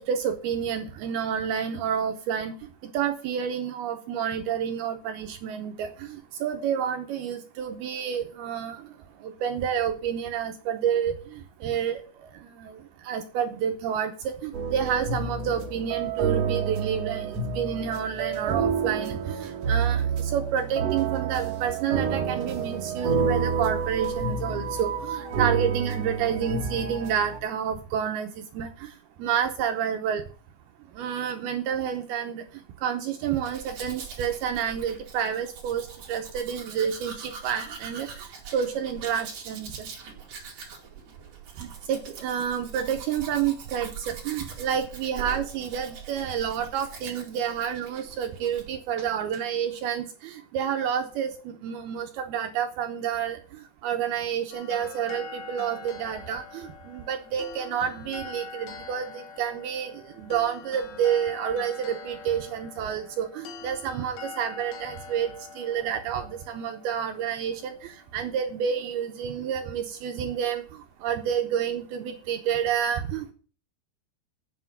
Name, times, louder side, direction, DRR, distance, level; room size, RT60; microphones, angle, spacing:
voice 1, 0.0-2.5 2.9-8.8 9.2-11.1 11.6-12.0 12.6-12.7 13.1-20.0 20.3-28.7 29.2-30.2 31.0-32.4 32.8-38.1 38.5-39.9 41.6-53.4 53.8-59.9 60.2-67.7 68.1-70.6 71.0-73.3, right 8 dB, 75° right, 5 dB, 2.6 m, -29 dB
sound 1, 14.5-27.4, right 5 dB, 60° right, 1.8 m, -29 dB
Domestic sounds home sounds, 33.3-48.7 49.0-49.4, right 6 dB, 40° right, 3.0 m, -42 dB
sound 2, 54.5-67.7, left 5 dB, 85° left, 3.8 m, -44 dB
8.4 x 7.9 x 7.1 m, 0.40 s
omnidirectional pair, 5.0 m